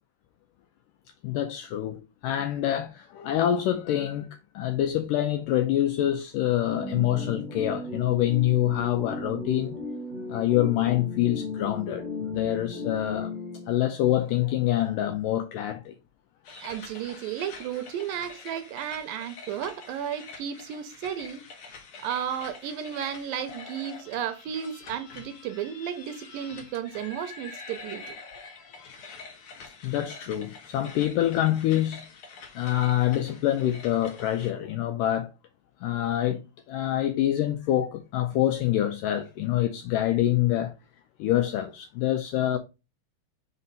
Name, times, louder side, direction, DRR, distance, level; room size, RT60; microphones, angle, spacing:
voice 1, 1.2-4.3 4.6-9.8 10.3-13.3 13.7-16.0 29.8-32.0 32.6-35.3 35.8-36.4 36.7-40.7 41.2-42.6, left 12 dB, 85° left, 1.9 m, -26 dB
sound 1, 6.6-14.0, left 3 dB, 15° right, 1.3 m, -35 dB
sound 2, 16.4-34.5, left 4 dB, 70° left, 1.3 m, -46 dB
voice 2, 16.6-21.4 22.0-28.2, right 9 dB, 80° right, 2.2 m, -33 dB
5.3 x 4.2 x 5.2 m
omnidirectional pair, 4.4 m